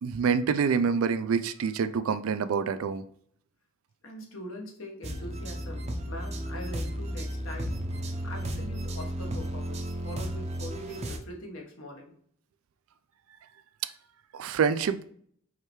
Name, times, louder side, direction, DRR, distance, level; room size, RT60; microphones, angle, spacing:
voice 1, 0.0-3.0 14.3-15.1, right 6 dB, 80° right, 0.4 m, -26 dB
voice 2, 4.0-7.8 8.2-12.1, left 1 dB, 70° left, 1.1 m, -42 dB
sound 1, 5.0-11.2, equal, 30° right, 0.6 m, -34 dB
4.8 x 3.3 x 3.0 m
head